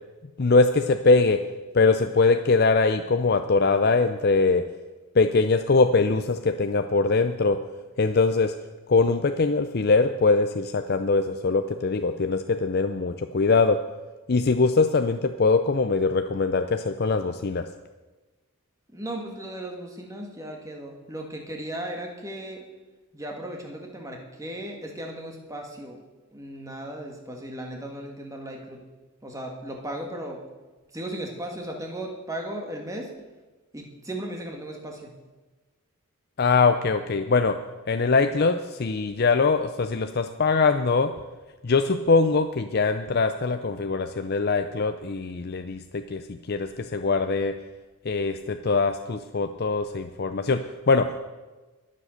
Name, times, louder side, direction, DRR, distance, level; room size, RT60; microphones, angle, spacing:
voice 1, 0.4-1.4 1.7-4.7 5.2-7.6 8.0-8.5 8.9-13.8 14.3-17.7 36.4-37.6 37.9-41.1 41.6-47.6 48.0-51.3, left 4 dB, 45° left, 8 dB, 0.5 m, -22 dB
voice 2, 18.9-22.6 23.1-26.0 26.3-28.8 29.2-30.4 30.9-33.1 33.7-35.1, right 1 dB, 15° right, 2 dB, 2.0 m, -36 dB
21.5 x 7.6 x 6.5 m, 1.2 s
head